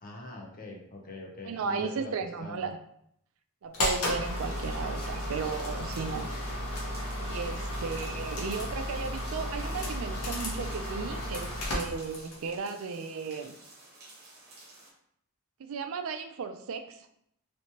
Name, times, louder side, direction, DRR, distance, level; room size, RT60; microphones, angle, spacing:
voice 1, 0.0-2.7, left 2 dB, 40° left, 0 dB, 0.6 m, -43 dB
voice 2, 1.4-2.8 3.6-6.3 7.2-13.5 15.6-17.1, right 5 dB, 65° right, 8 dB, 0.4 m, -35 dB
sound 1, 3.7-12.5, left 1 dB, 90° left, 1.0 m, -34 dB
sound 2, 4.2-14.9, right 2 dB, 45° right, 1.0 m, -53 dB
3.3 x 2.9 x 2.9 m, 0.72 s
head